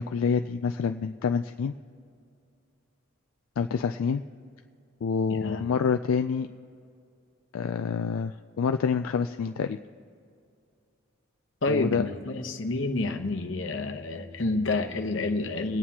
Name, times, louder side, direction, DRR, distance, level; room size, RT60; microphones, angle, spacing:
voice 1, 0.0-1.7 3.6-4.2 5.0-6.5 7.5-9.8 11.7-12.1, left 6 dB, 85° left, 7 dB, 0.3 m, -27 dB
voice 2, 5.3-5.6 11.6-15.8, left 2 dB, 65° left, 5 dB, 0.9 m, -29 dB
26.0 x 9.3 x 2.9 m, 2.4 s
head